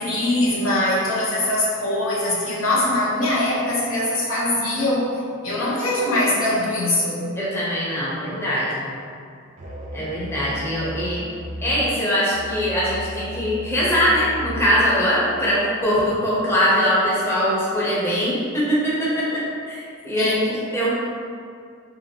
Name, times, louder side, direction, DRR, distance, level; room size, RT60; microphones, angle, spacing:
voice 1, 0.0-7.3 20.1-20.6, left 1 dB, 80° left, -5 dB, 0.6 m, -22 dB
voice 2, 7.4-8.9 9.9-11.2 11.6-20.9, equal, 10° left, -8 dB, 0.6 m, -22 dB
Musical instrument, 9.6-14.7, left 1 dB, 35° right, 0.3 m, -35 dB
2.9 x 2.5 x 2.7 m, 2.3 s
head